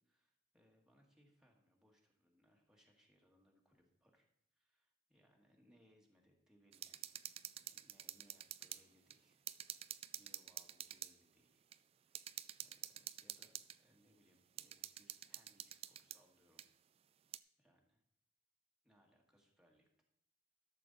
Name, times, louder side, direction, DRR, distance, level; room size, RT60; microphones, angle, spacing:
voice 1, 0.0-4.3 4.5-7.2 7.7-9.5 10.2-11.7 12.0-16.6 17.6-18.0 18.8-20.0, equal, 5° right, -1 dB, 1.4 m, -73 dB
sound 1, 6.7-8.8 9.1-9.2 9.5-11.1 11.7-11.8 12.2-13.8 14.6-16.2 16.6-16.7 17.3-17.4, right 11 dB, 35° right, 0.3 m, -48 dB
12.0 x 6.9 x 3.9 m, 0.76 s
head